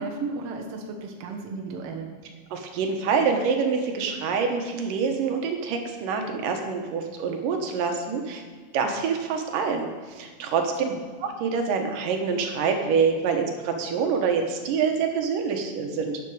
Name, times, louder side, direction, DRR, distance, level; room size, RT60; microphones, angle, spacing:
voice 1, 0.0-2.1 10.8-11.0, right 3 dB, 55° right, 1 dB, 2.0 m, -34 dB
voice 2, 2.5-8.4 8.7-10.9 11.2-16.2, right 5 dB, 85° right, 4 dB, 2.7 m, -26 dB
12.0 x 9.6 x 4.8 m, 1.6 s
omnidirectional pair, 3.8 m